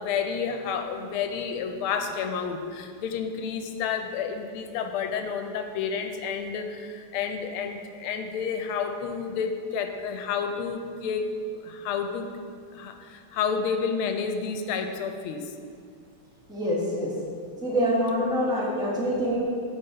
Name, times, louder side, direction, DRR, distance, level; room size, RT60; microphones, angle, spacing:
voice 1, 0.0-11.2 11.6-12.3 12.7-15.5, left 6 dB, 85° left, 6 dB, 1.5 m, -30 dB
voice 2, 16.5-17.2 17.6-19.4, equal, 5° right, -4 dB, 0.6 m, -25 dB
7.1 x 5.1 x 4.4 m, 2.1 s
omnidirectional pair, 2.3 m